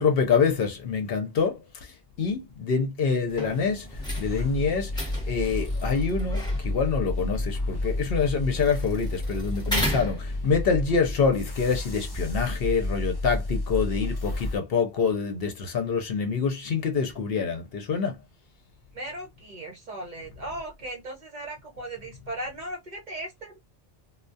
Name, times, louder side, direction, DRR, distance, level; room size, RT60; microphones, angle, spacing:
voice 1, 0.0-1.9 2.2-18.2, left 5 dB, 65° left, 0.8 m, -26 dB
sound 1, 3.3-10.8, equal, 5° left, 0.8 m, -36 dB
sound 2, 3.9-14.6, left 2 dB, 35° left, 0.4 m, -31 dB
voice 2, 18.9-23.6, right 1 dB, 50° right, 0.8 m, -37 dB
2.3 x 2.1 x 2.5 m
omnidirectional pair, 1.1 m